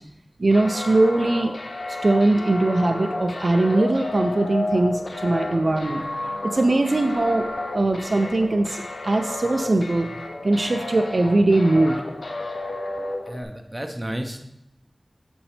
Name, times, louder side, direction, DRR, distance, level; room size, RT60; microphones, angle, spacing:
voice 1, 0.4-1.5 2.0-6.0 6.4-7.5 7.7-10.1 10.4-12.0, right 2 dB, 60° right, 5 dB, 0.5 m, -20 dB
sound 1, 0.5-13.4, left 2 dB, 80° left, 0.7 m, -32 dB
voice 2, 13.3-14.4, right 1 dB, 20° right, 4 dB, 0.7 m, -32 dB
8.8 x 5.2 x 3.3 m, 0.82 s
wide cardioid pair, 65°, 0 cm